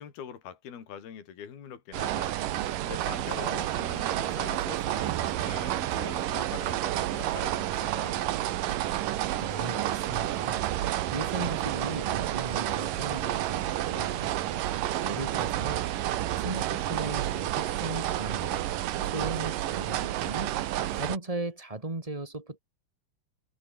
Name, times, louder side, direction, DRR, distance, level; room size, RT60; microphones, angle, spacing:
voice 1, 0.0-8.2 14.7-15.4, left 8 dB, 65° left, 5.2 m, -44 dB
sound 1, 1.9-21.2, right 13 dB, 65° right, 2.5 m, -30 dB
voice 2, 9.4-10.6 11.1-14.3 15.0-15.8 16.4-18.6 19.0-20.5 20.9-22.6, right 2 dB, 15° right, 1.2 m, -37 dB
omnidirectional pair, 4.8 m